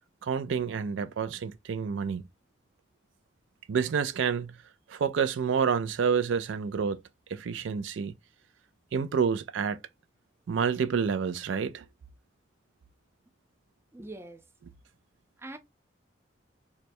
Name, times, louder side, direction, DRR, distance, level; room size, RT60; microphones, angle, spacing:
voice 1, 0.2-2.2 3.7-4.6 4.9-7.0 7.3-8.1 8.9-9.8 10.5-11.8, right 6 dB, 80° right, 0.4 m, -28 dB
voice 2, 13.9-14.5 15.4-15.6, right 2 dB, 15° right, 0.4 m, -43 dB
3.1 x 2.2 x 4.2 m
head